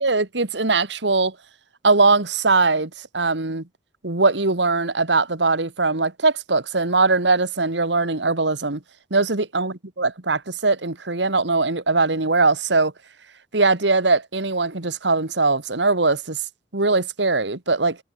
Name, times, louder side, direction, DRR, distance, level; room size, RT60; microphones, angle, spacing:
voice 1, 0.0-1.4 1.8-3.6 4.0-8.8 9.1-12.9 13.5-16.4 16.7-18.0, right 3 dB, 80° right, 2.0 m, -21 dB
head